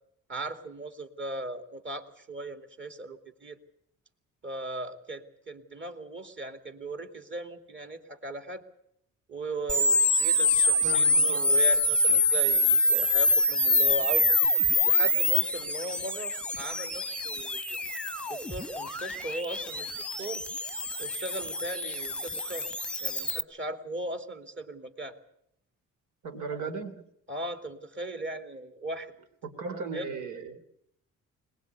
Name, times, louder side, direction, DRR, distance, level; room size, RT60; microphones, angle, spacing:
voice 1, 0.3-3.6 4.4-8.6 9.3-14.3 14.8-17.6 18.3-19.9 20.2-20.5 21.0-22.7 23.0-25.2 26.6-26.7 27.3-29.1 29.9-30.1, right 2 dB, 40° right, 7 dB, 2.7 m, -38 dB
sound 1, 9.7-23.4, left 2 dB, 5° left, 0.9 m, -26 dB
voice 2, 10.8-11.6 26.2-27.1 29.4-30.6, right 4 dB, 85° right, 6 dB, 3.2 m, -37 dB
21.5 x 20.0 x 8.3 m, 0.73 s
cardioid pair, 90°, 30 cm